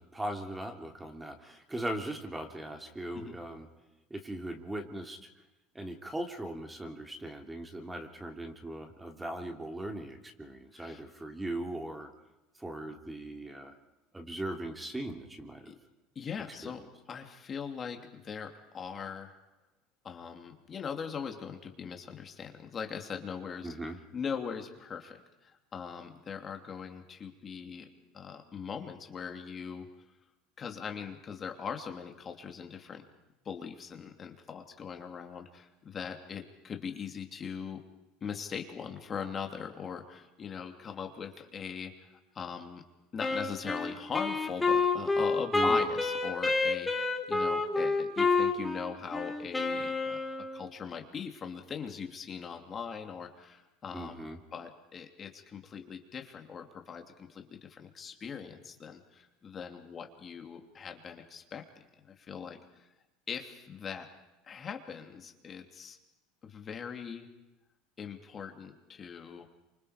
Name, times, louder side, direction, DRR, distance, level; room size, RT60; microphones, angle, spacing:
voice 1, 0.0-3.7 4.1-5.3 5.7-12.1 12.6-13.7 14.1-15.7 16.6-16.7 23.6-24.0 45.5-45.8 53.9-54.4, right 1 dB, 10° right, 4 dB, 3.1 m, -39 dB
voice 2, 16.1-19.3 20.0-23.7 24.1-29.9 30.6-33.1 33.4-37.8 38.2-42.8 43.1-50.2 50.5-54.2 54.5-61.6 62.0-62.9 63.3-64.1 64.4-66.0 66.4-67.3 68.0-69.5, left 6 dB, 35° left, 4 dB, 2.9 m, -41 dB
Wind instrument woodwind instrument, 43.2-50.7, left 3 dB, 10° left, 3.3 m, -29 dB
28.0 x 25.5 x 5.1 m, 1.0 s
supercardioid pair, 105°, 0 cm